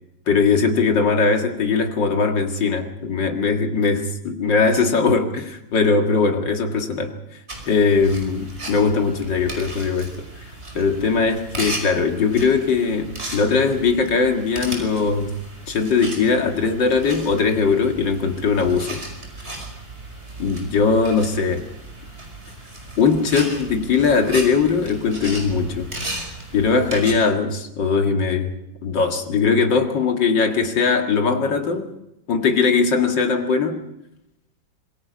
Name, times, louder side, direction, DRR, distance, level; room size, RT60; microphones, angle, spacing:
voice 1, 0.3-7.1 7.7-10.1 10.7-15.3 15.7-19.0 20.4-21.6 23.0-25.9 26.5-28.5 28.8-31.9 32.3-33.8, left 5 dB, 70° left, 4 dB, 2.6 m, -20 dB
sound 1, 7.5-27.1, right 2 dB, 30° right, 5.5 m, -35 dB
26.0 x 22.0 x 5.2 m, 0.87 s
omnidirectional pair, 2.1 m